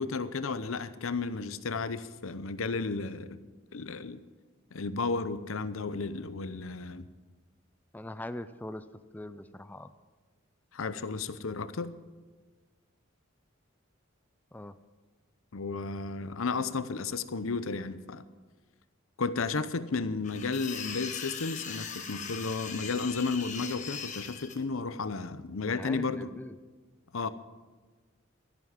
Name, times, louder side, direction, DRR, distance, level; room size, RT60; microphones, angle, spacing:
voice 1, 0.0-3.4 3.7-4.2 4.7-7.1 10.7-11.9 15.5-18.3 19.2-26.3 27.1-27.3, left 4 dB, 80° left, 14 dB, 0.7 m, -33 dB
voice 2, 7.9-9.9 14.5-14.8 25.7-26.6, left 1 dB, 10° left, 11 dB, 0.4 m, -42 dB
sound 1, 20.2-24.6, left 6 dB, 35° left, 1.4 m, -40 dB
13.5 x 10.5 x 7.3 m, 1.4 s
head